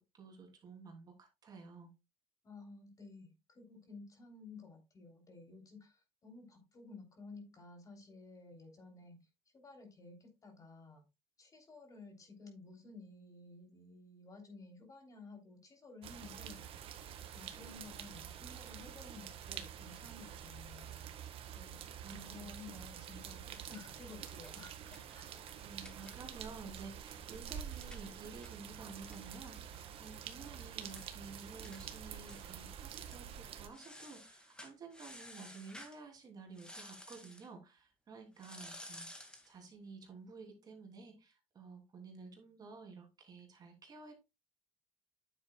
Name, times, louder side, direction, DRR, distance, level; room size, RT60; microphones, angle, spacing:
voice 1, 0.0-1.9 22.0-22.8 25.6-39.1 39.4-44.1, right 4 dB, 35° right, 2.9 m, -52 dB
voice 2, 2.4-9.3 9.5-11.0 11.4-16.7 17.3-21.0 21.5-21.8 22.1-25.4, left 3 dB, 30° left, 3.3 m, -54 dB
sound 1, 16.0-33.7, right 9 dB, 60° right, 1.4 m, -48 dB
sound 2, 23.9-26.5 26.8-26.9 27.2-30.3 30.6-30.7 30.9-31.2 31.6-31.8 32.3-32.7 33.0-33.2 33.7-36.0 36.5-37.5 38.4-39.5, left 1 dB, 10° left, 2.0 m, -54 dB
9.6 x 7.5 x 2.3 m
cardioid pair, 110°, 11 cm